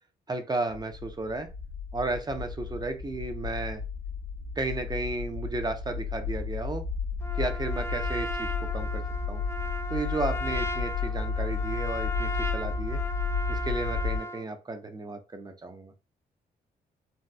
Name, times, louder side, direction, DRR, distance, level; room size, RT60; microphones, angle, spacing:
voice 1, 0.3-1.5 1.9-3.8 4.6-6.8 7.3-9.4 9.9-13.0 13.5-15.9, right 2 dB, 25° right, 6 dB, 0.7 m, -33 dB
sound 1, 0.7-14.2, left 5 dB, 60° left, 1.5 m, -33 dB
Trumpet, 7.2-14.5, equal, 15° left, 0.5 m, -36 dB
4.1 x 2.2 x 2.3 m, 0.29 s
cardioid pair, 70°, 18 cm